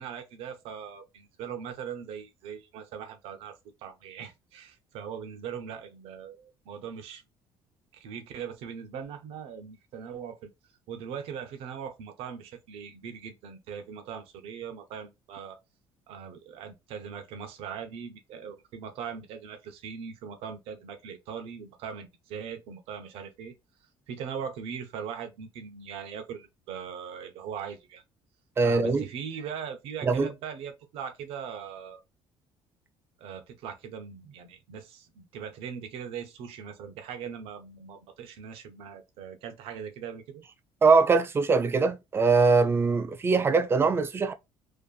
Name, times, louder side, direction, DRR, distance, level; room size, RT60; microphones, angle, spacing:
voice 1, 0.0-7.2 7.9-10.5 10.9-15.6 16.1-23.5 24.1-28.0 28.6-32.0 33.2-40.4, right 7 dB, 75° right, 0.6 m, -40 dB
voice 2, 28.6-29.1 30.0-30.3 40.8-44.3, right 4 dB, 25° right, 0.4 m, -22 dB
2.5 x 2.5 x 2.2 m
cardioid pair, 120°, 10 cm